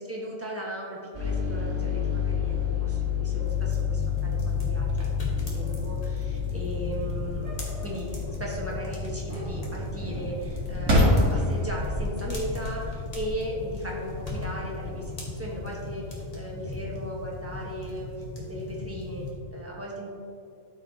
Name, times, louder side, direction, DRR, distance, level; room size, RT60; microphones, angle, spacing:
voice 1, 0.0-20.1, equal, 10° right, -4 dB, 1.2 m, -37 dB
sound 1, 1.1-18.7, left 7 dB, 40° right, 1.7 m, -32 dB
fire small loop, 3.4-19.3, left 2 dB, 30° left, 1.3 m, -38 dB
sound 2, 4.9-15.8, left 1 dB, 70° right, 2.1 m, -31 dB
12.5 x 4.8 x 2.9 m, 2.5 s
omnidirectional pair, 1.4 m